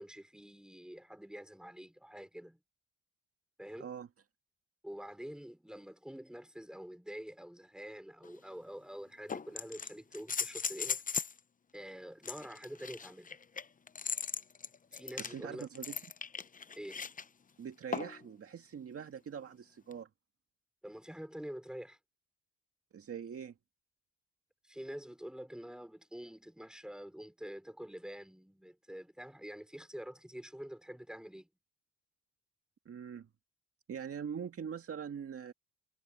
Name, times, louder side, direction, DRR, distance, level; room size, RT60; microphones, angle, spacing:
voice 1, 0.0-2.6 3.6-3.9 4.8-11.0 11.7-13.4 14.9-15.7 16.7-17.1 20.8-22.0 24.6-31.5, equal, ahead, 5.1 m, -47 dB
sound 1, 8.2-8.3 9.3-11.4 12.2-17.2 17.9-18.3 19.9-20.0, left 5 dB, 25° left, 0.8 m, -38 dB
voice 2, 15.2-16.0 17.6-20.1 22.9-23.6 32.9-33.3 33.9-35.5, right 7 dB, 50° right, 2.0 m, -43 dB
cardioid pair, 90°, 30 cm